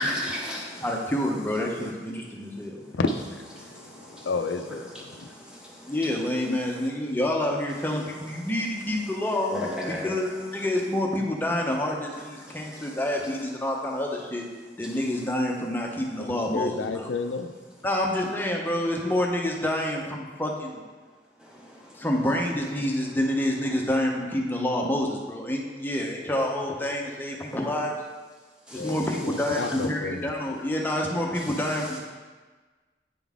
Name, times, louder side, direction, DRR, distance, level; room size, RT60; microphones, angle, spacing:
voice 1, 0.0-0.8 3.6-4.3 4.6-5.9 6.5-6.6 9.5-10.2 12.4-12.9 21.4-22.0 28.7-28.9, left 1 dB, 5° right, -4 dB, 1.1 m, -35 dB
voice 2, 0.8-3.0 5.9-9.5 10.0-14.4 14.8-17.1 17.8-20.8 21.9-27.9 28.7-32.0, left 1 dB, 10° left, -1 dB, 0.7 m, -28 dB
voice 3, 2.9-3.8 4.1-5.3 16.2-17.5 28.7-30.2, left 3 dB, 90° left, 7 dB, 0.5 m, -31 dB
9.2 x 3.8 x 3.6 m, 1.4 s
head